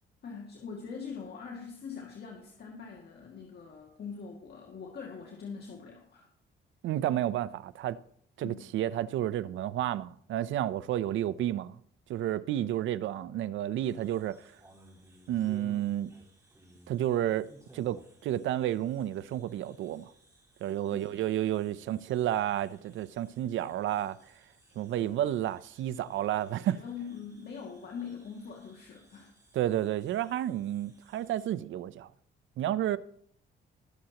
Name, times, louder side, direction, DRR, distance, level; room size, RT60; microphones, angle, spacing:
voice 1, 0.2-6.3 8.4-8.7 20.9-21.0 25.0-25.2 26.7-29.3, left 6 dB, 55° left, 2.2 m, -43 dB
voice 2, 6.8-8.0 8.4-11.7 12.1-14.5 15.3-16.2 16.9-17.5 17.7-20.1 20.6-24.2 24.8-26.8 29.5-32.1 32.6-33.0, right 12 dB, 75° right, 0.6 m, -31 dB
sound 1, 13.8-31.5, right 1 dB, 15° right, 4.3 m, -60 dB
21.5 x 7.7 x 3.0 m
cardioid pair, 90°, 20 cm